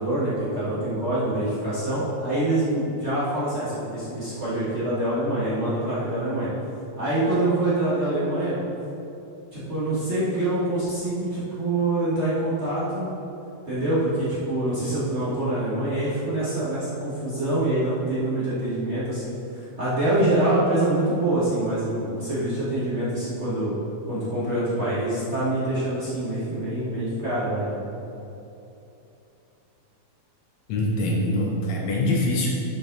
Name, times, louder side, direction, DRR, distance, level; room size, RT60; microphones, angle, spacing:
voice 1, 0.0-6.5 7.0-8.6 9.5-13.1 13.7-23.7 24.1-27.9, right 1 dB, 40° right, -11 dB, 0.9 m, -25 dB
voice 2, 30.7-32.5, left 1 dB, 75° left, -1 dB, 1.8 m, -24 dB
10.5 x 5.0 x 4.0 m, 2.9 s
omnidirectional pair, 3.9 m